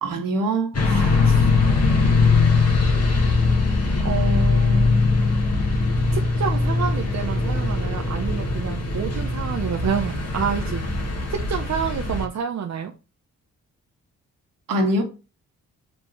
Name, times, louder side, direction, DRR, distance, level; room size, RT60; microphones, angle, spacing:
voice 1, 0.0-1.2 14.7-15.0, right 1 dB, 75° right, 1.7 m, -24 dB
sound 1, 0.7-12.3, left 3 dB, 45° left, 2.0 m, -21 dB
voice 2, 4.0-5.0 6.1-10.9 11.3-12.9, right 7 dB, 55° right, 0.8 m, -28 dB
5.3 x 4.5 x 4.0 m
supercardioid pair, 50°, 34 cm